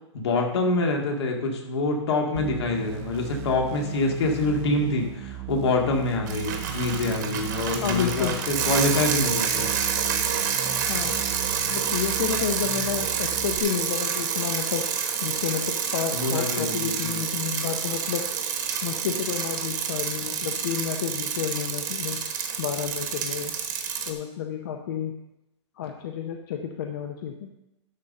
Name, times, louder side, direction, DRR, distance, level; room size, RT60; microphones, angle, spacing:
voice 1, 0.1-9.7 16.1-17.2, left 2 dB, 60° left, 2 dB, 2.0 m, -26 dB
sound 1, 2.4-13.6, right 9 dB, 15° right, 0.4 m, -37 dB
Bicycle, 6.3-24.1, right 7 dB, 40° right, 1.2 m, -28 dB
voice 2, 7.8-8.4 10.9-11.1 11.7-14.9 15.2-18.2 18.8-22.2 22.6-23.5 24.1-25.2 25.8-27.5, left 8 dB, 45° left, 4 dB, 0.7 m, -30 dB
11.5 x 4.2 x 6.4 m, 0.90 s
hypercardioid pair, 180°, 15 cm